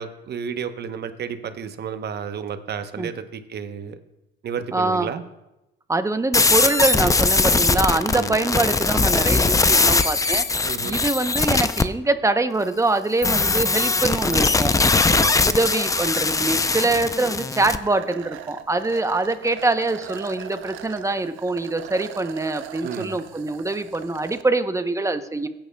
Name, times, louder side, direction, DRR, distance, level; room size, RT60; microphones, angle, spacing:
voice 1, 0.0-4.0 4.4-5.3 8.1-8.4 10.7-11.0 15.1-15.3 22.8-23.2, right 7 dB, 55° right, 9 dB, 0.9 m, -31 dB
voice 2, 4.7-5.1 5.9-10.4 10.8-14.7 15.4-25.5, right 2 dB, 15° right, 9 dB, 0.7 m, -24 dB
sound 1, 6.3-11.8 13.2-17.8, left 3 dB, 15° left, 0.4 m, -20 dB
sound 2, 17.7-24.4, right 12 dB, 85° right, 0.5 m, -40 dB
16.5 x 9.0 x 2.2 m, 0.93 s
cardioid pair, 90°, 20 cm